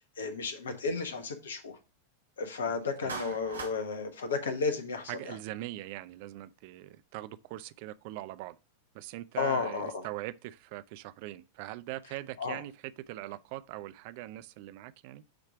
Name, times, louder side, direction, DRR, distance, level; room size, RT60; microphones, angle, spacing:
voice 1, 0.2-1.8 2.4-5.4 9.4-10.0 12.4-12.6, left 4 dB, 65° left, 1.2 m, -33 dB
Clapping, 3.1-3.8, right 4 dB, 75° right, 1.4 m, -39 dB
voice 2, 5.1-8.6 8.9-15.2, right 16 dB, 45° right, 0.4 m, -41 dB
8.3 x 3.2 x 4.9 m
figure-of-eight pair, 90°, 0 cm